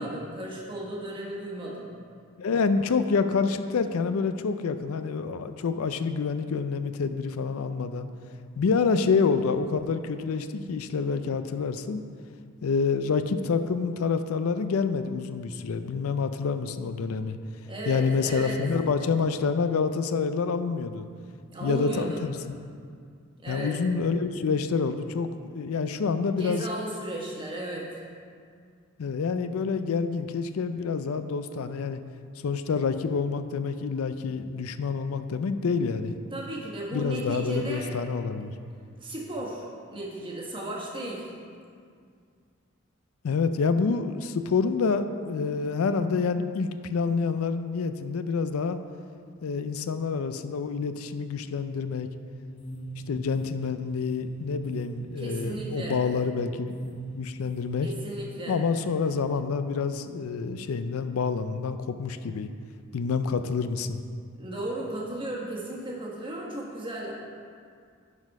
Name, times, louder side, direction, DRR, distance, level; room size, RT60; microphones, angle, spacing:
voice 1, 0.0-1.9 17.7-18.6 21.5-22.2 23.4-23.8 26.4-27.9 36.3-37.9 39.0-41.3 55.2-56.0 57.8-58.6 64.4-67.1, right 1 dB, 25° right, -3 dB, 1.3 m, -35 dB
voice 2, 2.4-8.1 8.6-12.0 12.6-17.4 17.9-21.1 21.6-22.6 23.5-26.7 29.0-32.0 32.4-36.2 36.9-38.5 43.2-48.8 49.4-52.1 53.1-57.9 58.5-62.5 62.9-64.0, left 5 dB, 80° left, 10 dB, 0.4 m, -27 dB
sound 1, 52.5-57.7, right 2 dB, 30° left, 1.0 m, -38 dB
10.5 x 4.2 x 5.3 m, 2.2 s
head